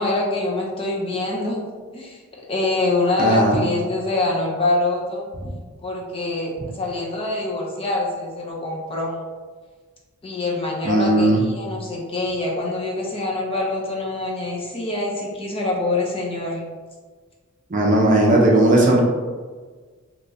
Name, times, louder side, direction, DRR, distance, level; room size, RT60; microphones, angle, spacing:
voice 1, 0.0-1.6 1.9-5.3 5.8-9.1 10.2-16.6, left 2 dB, 25° left, -3 dB, 0.6 m, -25 dB
voice 2, 3.2-3.6 10.8-11.4 17.7-19.0, right 1 dB, 40° right, -2 dB, 0.6 m, -16 dB
3.3 x 2.9 x 2.6 m, 1.5 s
head